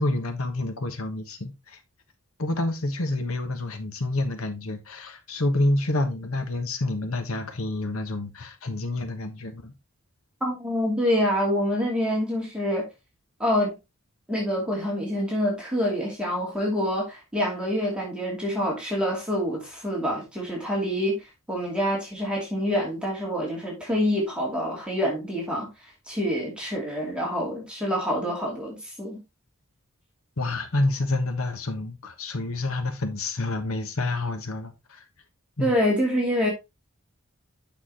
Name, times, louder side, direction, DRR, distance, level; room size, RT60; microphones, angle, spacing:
voice 1, 0.0-1.8 2.4-9.7 30.4-35.0 35.6-35.7, left 2 dB, 80° left, 1.3 m, -28 dB
voice 2, 10.4-12.9 13.4-13.8 14.3-21.2 21.5-25.7 26.1-29.2 35.6-36.5, equal, 5° right, 2.8 m, -26 dB
8.8 x 6.0 x 2.9 m
head